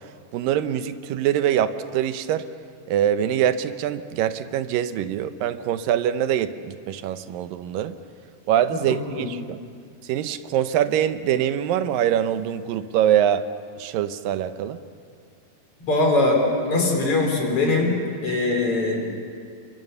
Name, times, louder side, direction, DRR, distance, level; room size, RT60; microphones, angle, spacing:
voice 1, 0.3-2.5 2.9-8.0 8.5-9.6 10.0-13.5 13.8-14.8, right 10 dB, 80° right, 11 dB, 2.5 m, -24 dB
voice 2, 8.9-9.3 15.9-18.0 18.2-19.0, left 2 dB, 40° left, 2 dB, 4.7 m, -21 dB
27.5 x 24.0 x 6.9 m, 2.2 s
omnidirectional pair, 4.0 m